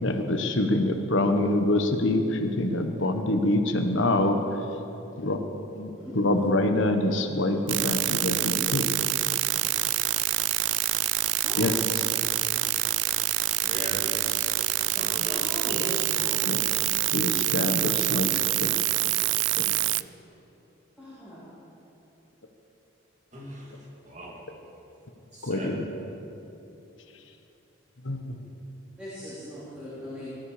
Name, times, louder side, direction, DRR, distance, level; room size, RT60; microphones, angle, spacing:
voice 1, 0.0-4.4 5.2-5.4 5.8-8.9 11.6-11.7 16.5-16.6 17.1-18.7 19.6-19.7 25.4-25.8 28.0-28.4, left 1 dB, 75° left, 6 dB, 1.2 m, -25 dB
voice 2, 5.9-6.4 11.4-11.9 15.4-16.4 21.0-21.4 29.0-30.4, left 1 dB, 5° right, -12 dB, 4.2 m, -39 dB
sound 1, 7.7-20.0, right 17 dB, 65° right, 0.3 m, -26 dB
voice 3, 13.6-14.5 14.9-17.0 23.3-24.4 25.3-25.8, right 1 dB, 35° right, -2 dB, 2.6 m, -39 dB
19.5 x 13.0 x 5.0 m, 2.9 s
head